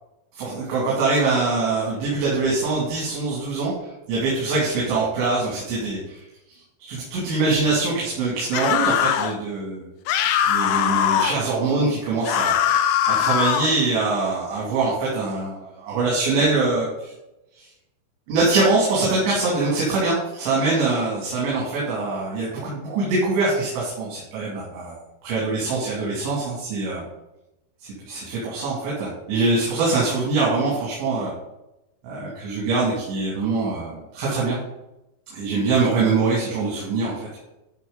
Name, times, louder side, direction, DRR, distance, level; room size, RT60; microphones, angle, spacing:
voice 1, 0.4-3.7 4.1-6.1 6.8-9.9 10.5-12.6 13.1-17.1 17.6-17.7 18.3-27.0 27.8-31.3 32.0-34.6 35.3-37.3, right 3 dB, 85° right, -5 dB, 4.7 m, -23 dB
sound 1, 8.5-9.3 10.1-11.4 12.2-13.8, left 10 dB, 90° left, 2.0 m, -21 dB
13.0 x 5.8 x 3.9 m, 0.94 s
omnidirectional pair, 5.0 m